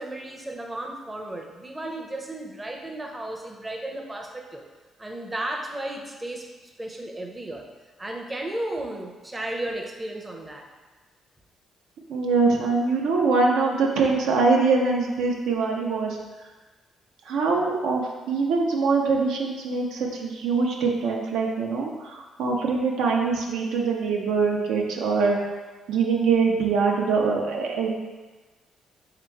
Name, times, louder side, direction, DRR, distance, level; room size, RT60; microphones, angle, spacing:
voice 1, 0.0-4.6 5.0-6.5 6.8-7.7 8.0-10.6, right 1 dB, 15° right, 1 dB, 0.6 m, -34 dB
voice 2, 12.1-16.2 17.3-25.4 25.9-27.9, right 4 dB, 85° right, 0 dB, 0.6 m, -23 dB
3.4 x 2.9 x 4.4 m, 1.3 s
cardioid pair, 90°, 0 cm